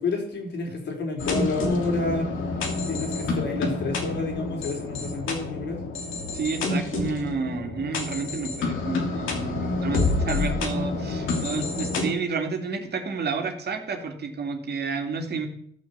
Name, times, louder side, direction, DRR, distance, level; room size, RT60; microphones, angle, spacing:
voice 1, 0.0-2.3 2.9-5.8, left 3 dB, 60° left, 2 dB, 4.2 m, -29 dB
sound 1, 1.2-12.0, left 3 dB, 80° left, 2.9 m, -28 dB
voice 2, 6.3-15.5, right 5 dB, 55° right, 4 dB, 2.5 m, -30 dB
14.0 x 6.2 x 7.4 m, 0.68 s
cardioid pair, 90°, 20 cm